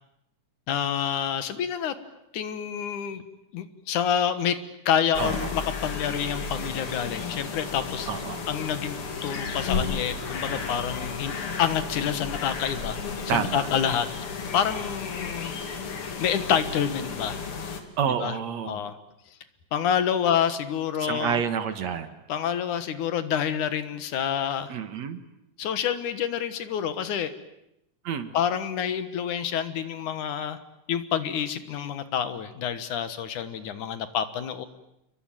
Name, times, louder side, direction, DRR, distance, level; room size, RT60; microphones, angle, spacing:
voice 1, 0.7-1.9 2.3-3.2 3.5-4.6 4.9-8.1 8.5-11.3 11.6-13.0 13.3-14.1 14.5-15.5 16.2-17.4 18.1-18.4 18.6-19.0 19.7-21.4 22.3-24.7 25.6-27.3 28.3-30.6 30.9-34.7, left 8 dB, 75° left, 12 dB, 2.9 m, -28 dB
sound 1, 5.1-17.8, left 5 dB, 45° left, 3.0 m, -33 dB
voice 2, 5.2-5.5 8.1-8.4 13.3-13.7 18.0-18.8 21.0-22.1 24.7-25.2 28.0-28.3, right 8 dB, 60° right, 10 dB, 2.6 m, -29 dB
28.5 x 22.5 x 9.0 m, 0.83 s
omnidirectional pair, 3.6 m